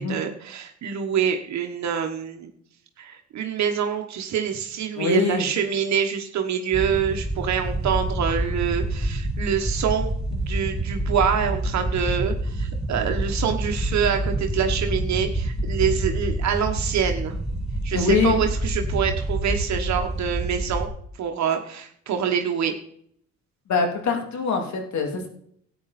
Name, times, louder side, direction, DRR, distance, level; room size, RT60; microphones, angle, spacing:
voice 1, 0.0-2.5 3.0-17.3 17.8-20.9 21.2-22.7, right 7 dB, 65° right, 4 dB, 1.2 m, -26 dB
voice 2, 5.0-5.4 17.9-18.4 23.7-25.3, left 4 dB, 70° left, 3 dB, 2.7 m, -23 dB
sound 1, 6.7-20.9, right 1 dB, ahead, 1.7 m, -27 dB
13.5 x 8.9 x 4.2 m, 0.65 s
cardioid pair, 90°, 30 cm